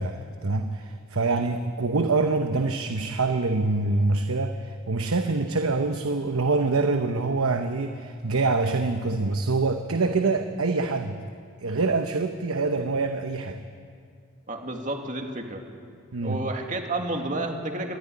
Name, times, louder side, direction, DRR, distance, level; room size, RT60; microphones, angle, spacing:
voice 1, 0.0-11.2 11.6-13.6 16.1-16.4, right 3 dB, 85° right, 6 dB, 1.0 m, -25 dB
voice 2, 14.5-15.6 16.2-18.0, right 2 dB, 35° right, 3 dB, 2.2 m, -30 dB
24.5 x 14.0 x 9.8 m, 2.3 s
head